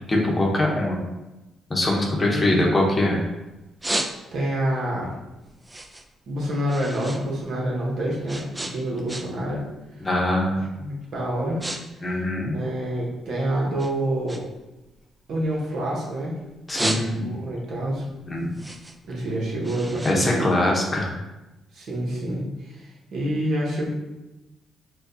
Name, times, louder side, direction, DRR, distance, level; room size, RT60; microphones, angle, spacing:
voice 1, 0.1-1.0 1.7-3.2 10.0-10.6 12.0-12.6 16.7-17.4 18.3-18.6 20.0-21.2, left 1 dB, 25° left, -1 dB, 0.9 m, -23 dB
voice 2, 2.3-2.7 4.3-5.1 6.3-9.6 10.0-10.1 10.7-11.6 12.5-14.4 15.3-16.4 16.8-18.0 19.1-20.5 21.7-23.9, right 1 dB, 70° right, -3 dB, 1.1 m, -27 dB
sound 1, 2.8-3.2 3.6-4.6 5.0-7.2 7.5-9.5 9.8-10.2 10.8-11.0 11.3-11.8 12.1-13.3 13.8-16.1 16.5-17.5 17.9-21.1, right 1 dB, 15° right, 0.4 m, -33 dB
4.8 x 2.3 x 2.7 m, 1.0 s
cardioid pair, 90°, 0 cm